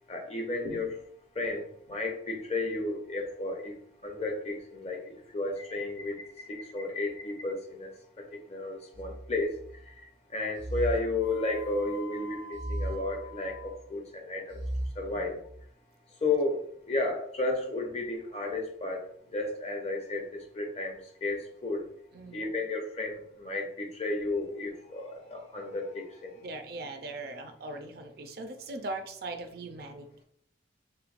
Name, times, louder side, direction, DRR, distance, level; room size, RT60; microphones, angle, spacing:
voice 1, 0.1-1.0 1.3-3.7 4.0-7.9 8.2-9.6 9.8-14.6 15.0-15.4 16.2-19.1 19.3-21.9 22.3-26.5, left 2 dB, 35° left, 2 dB, 0.6 m, -33 dB
sound 1, 8.9-9.9 10.6-11.8 12.5-13.8 14.5-15.7, right 1 dB, 80° right, 1.0 m, -37 dB
sound 2, 11.2-13.8, left 2 dB, 75° left, 0.6 m, -46 dB
voice 2, 15.1-15.4 22.1-22.6 26.4-30.1, right 2 dB, 55° right, 6 dB, 0.4 m, -40 dB
3.4 x 3.0 x 2.5 m, 0.63 s
head